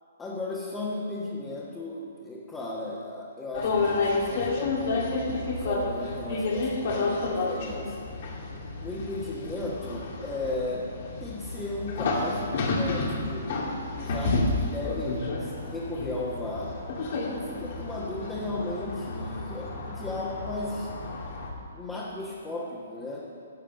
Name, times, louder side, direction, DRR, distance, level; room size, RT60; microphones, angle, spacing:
voice 1, 0.2-8.1 8.8-10.9 11.2-16.7 17.1-20.9 21.7-23.3, left 2 dB, 15° left, -6 dB, 1.6 m, -35 dB
sound 1, 3.5-21.5, left 3 dB, 55° left, 2.0 m, -30 dB
12.0 x 7.2 x 7.2 m, 2.4 s
hypercardioid pair, 140°, 0 cm